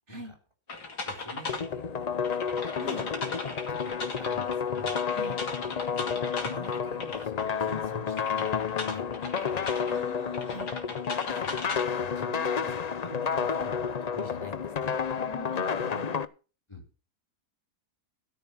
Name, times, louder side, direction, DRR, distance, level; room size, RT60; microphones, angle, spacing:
sound 1, 0.7-1.7 2.2-7.8 8.1-9.9 10.3-11.8, left 3 dB, 85° left, 2.9 m, -38 dB
voice 1, 1.0-2.6 3.7-3.9 4.2-5.0 5.9-6.2 6.4-9.7 11.3-11.6 12.0-14.9 16.7-16.8, left 1 dB, 15° left, 3 dB, 3.4 m, -46 dB
sound 2, 1.5-16.2, left 6 dB, 60° left, 0.4 m, -31 dB
voice 2, 9.9-10.7 15.1-16.2, right 2 dB, 45° right, 5 dB, 2.4 m, -42 dB
13.5 x 8.0 x 6.2 m, 0.35 s
omnidirectional pair, 1.7 m